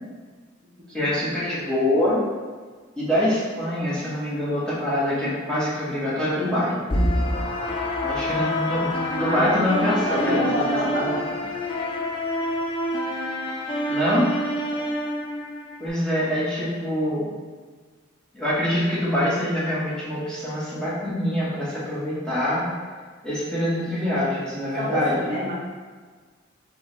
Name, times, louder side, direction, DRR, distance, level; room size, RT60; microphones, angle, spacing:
voice 1, 0.9-2.2 3.0-6.8 8.0-10.5 10.8-11.2 13.9-14.3 15.8-17.3 18.3-22.6 23.2-25.3, left 1 dB, 5° left, -10 dB, 1.2 m, -25 dB
sound 1, 6.9-15.9, equal, 25° left, 0.4 m, -27 dB
voice 2, 9.1-11.1 24.7-25.5, equal, 45° right, -5 dB, 0.8 m, -27 dB
6.3 x 2.3 x 3.1 m, 1.5 s
head